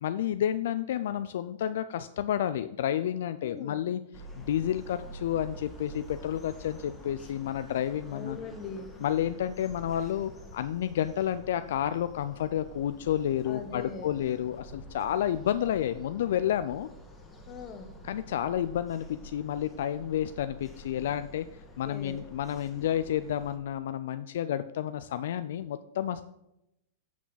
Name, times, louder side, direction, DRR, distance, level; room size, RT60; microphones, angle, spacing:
voice 1, 0.0-4.0 4.4-8.4 9.0-16.9 18.0-21.5 21.8-26.2, left 10 dB, 70° left, 11 dB, 0.3 m, -30 dB
voice 2, 3.4-3.8 8.1-8.9 13.4-14.1 17.5-17.9 21.8-22.3, left 5 dB, 35° left, 7 dB, 1.2 m, -41 dB
sound 1, 4.1-23.6, equal, 15° left, 1.7 m, -48 dB
8.4 x 6.0 x 4.0 m, 0.85 s
hypercardioid pair, 115°, 0 cm